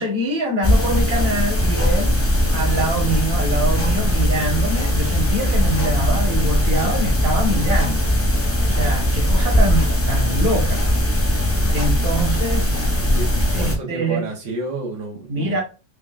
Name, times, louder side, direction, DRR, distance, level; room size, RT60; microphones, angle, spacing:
voice 1, 0.0-2.2 2.5-8.1 8.6-10.9 11.7-12.7 13.5-14.3 15.3-15.6, right 1 dB, 45° right, 1.3 m, -24 dB
sound 1, 0.6-13.8, equal, 20° left, 0.4 m, -19 dB
voice 2, 13.0-15.6, right 2 dB, 85° right, 1.2 m, -30 dB
5.1 x 2.2 x 2.3 m
omnidirectional pair, 1.2 m